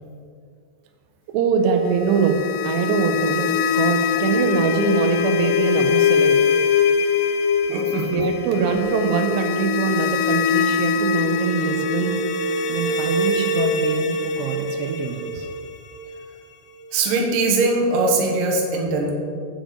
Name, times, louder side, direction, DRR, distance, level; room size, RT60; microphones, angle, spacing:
voice 1, 1.3-6.4 8.1-12.2 12.7-15.5, right 6 dB, 90° right, 6 dB, 2.8 m, -23 dB
sound 1, 1.9-16.8, left 5 dB, 80° left, 2.5 m, -22 dB
voice 2, 7.7-8.2 16.9-19.1, right 3 dB, 65° right, -1 dB, 2.6 m, -21 dB
7.5 x 7.1 x 5.0 m, 2.3 s
omnidirectional pair, 4.8 m